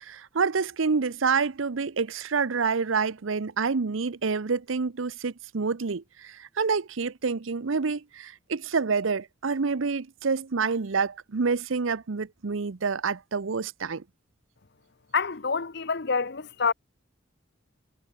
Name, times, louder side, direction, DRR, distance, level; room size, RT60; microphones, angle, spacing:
voice 1, 0.0-14.0, right 5 dB, 75° right, 0.7 m, -28 dB
voice 2, 15.1-16.7, left 5 dB, 55° left, 1.0 m, -27 dB
head